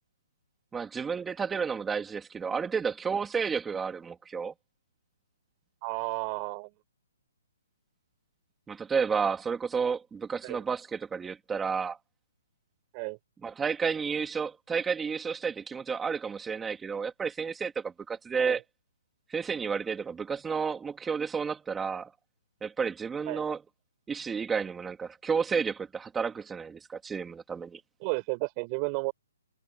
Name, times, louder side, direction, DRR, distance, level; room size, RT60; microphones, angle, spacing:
voice 1, 0.7-4.5 8.7-12.0 13.4-18.6 19.3-22.1 22.6-23.6 24.1-27.8, right 6 dB, 10° right, 3.1 m, -31 dB
voice 2, 5.8-6.7 10.4-10.6 12.9-13.2 18.4-18.6 23.3-23.4 28.0-29.1, right 33 dB, 30° right, 4.3 m, -32 dB
hypercardioid pair, 160°, 0 cm